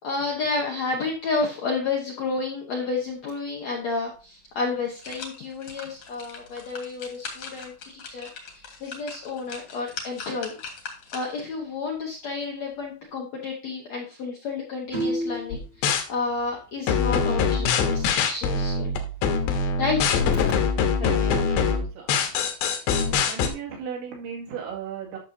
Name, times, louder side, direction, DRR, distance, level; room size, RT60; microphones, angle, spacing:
voice 1, 0.0-8.3 8.8-10.5 11.1-18.9 19.8-20.1, left 4 dB, 90° left, -1 dB, 1.5 m, -30 dB
sound 1, 4.1-4.2 4.7-11.5 12.0-12.1, left 4 dB, 55° left, 1.8 m, -41 dB
sound 2, 14.9-15.7 17.4-17.5 17.7-17.8 18.3-18.4 18.8-18.9 19.7-20.5, right 1 dB, 35° right, 0.7 m, -29 dB
sound 3, 15.5-16.0 16.9-23.5, left 5 dB, 75° left, 3.0 m, -23 dB
voice 2, 21.0-22.4 23.1-25.2, right 7 dB, 80° right, -2 dB, 4.5 m, -36 dB
11.5 x 6.5 x 2.8 m, 0.35 s
omnidirectional pair, 5.3 m